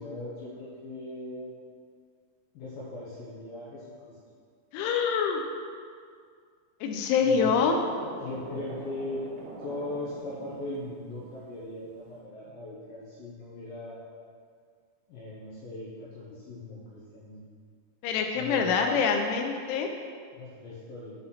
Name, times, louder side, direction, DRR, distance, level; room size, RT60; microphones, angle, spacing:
voice 1, 0.0-1.5 2.5-4.2 7.2-7.5 8.0-9.2 9.6-14.0 15.1-17.4 18.4-19.0 20.3-21.2, left 2 dB, 70° left, -8 dB, 2.2 m, -39 dB
voice 2, 4.7-5.4 6.8-7.8 18.0-19.9, left 6 dB, 90° left, 3 dB, 3.0 m, -25 dB
sound 1, 7.2-11.4 11.8-12.2, right 2 dB, 85° right, 1.9 m, -43 dB
7.7 x 4.1 x 5.6 m, 2.1 s
omnidirectional pair, 5.4 m